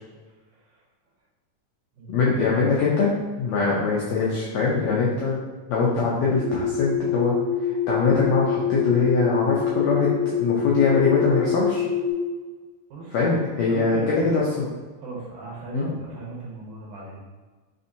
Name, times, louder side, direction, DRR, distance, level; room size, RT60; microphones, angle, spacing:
voice 1, 2.1-5.4 5.7-7.4 7.9-11.8 13.1-14.7 15.7-15.9, left 4 dB, 80° left, -5 dB, 1.5 m, -22 dB
sound 1, 6.3-12.1, left 7 dB, 65° left, 1.7 m, -25 dB
voice 2, 13.6-14.5 15.0-17.2, right 3 dB, 70° right, -4 dB, 2.4 m, -36 dB
5.5 x 3.6 x 2.7 m, 1.4 s
omnidirectional pair, 3.9 m